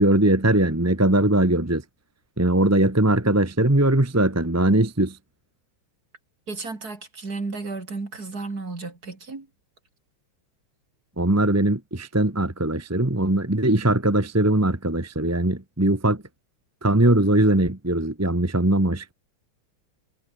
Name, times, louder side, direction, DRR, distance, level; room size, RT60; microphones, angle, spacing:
voice 1, 0.0-1.8 2.4-5.2 11.2-16.2 16.8-19.1, right 1 dB, 10° right, 1.3 m, -20 dB
voice 2, 6.5-9.5, right 3 dB, 45° right, 4.1 m, -33 dB
omnidirectional pair, 2.2 m